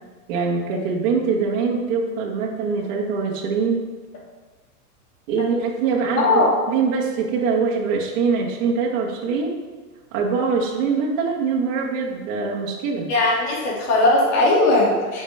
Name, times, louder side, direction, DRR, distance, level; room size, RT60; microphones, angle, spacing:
voice 1, 0.3-3.8 5.3-9.6 10.1-13.1, right 5 dB, 55° right, -2 dB, 2.1 m, -23 dB
voice 2, 6.2-6.5 13.1-15.2, left 2 dB, 35° left, -4 dB, 2.9 m, -18 dB
9.5 x 6.4 x 3.7 m, 1.3 s
hypercardioid pair, 135°, 46 cm